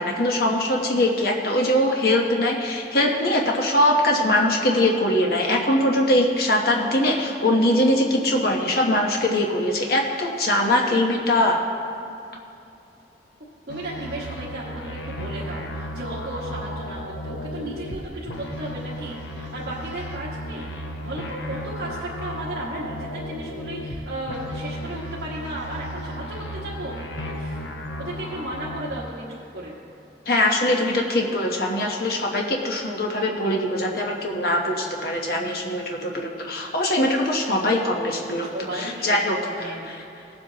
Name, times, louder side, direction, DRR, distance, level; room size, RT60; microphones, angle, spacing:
voice 1, 0.0-11.6 30.3-40.0, left 1 dB, 55° left, 0 dB, 1.0 m, -22 dB
sound 1, 13.7-18.0 18.3-24.0 24.3-28.9, equal, 80° left, 0.9 m, -34 dB
voice 2, 13.7-26.9 27.2-27.7 28.0-29.8 38.3-39.9, right 1 dB, 70° right, -8 dB, 1.5 m, -35 dB
18.0 x 7.6 x 2.9 m, 2.8 s
head